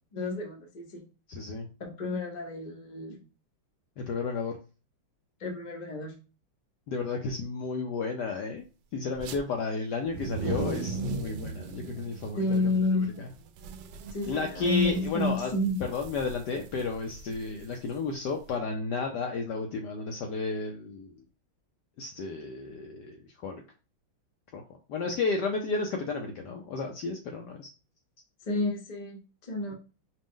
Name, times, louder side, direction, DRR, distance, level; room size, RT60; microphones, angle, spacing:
voice 1, 0.1-1.0 1.8-3.2 5.4-6.1 12.3-13.2 14.1-15.8 28.4-29.7, left 2 dB, 40° left, 2 dB, 0.6 m, -30 dB
voice 2, 1.3-1.7 4.0-4.6 6.9-8.6 8.9-12.6 13.2-13.3 14.3-15.5 15.9-21.2 22.0-23.6 24.5-24.6 24.9-27.7, left 4 dB, 70° left, 3 dB, 1.0 m, -32 dB
sound 1, 9.1-9.4 10.0-18.5, right 4 dB, 75° right, 1.2 m, -39 dB
5.1 x 2.1 x 3.6 m, 0.33 s
omnidirectional pair, 2.3 m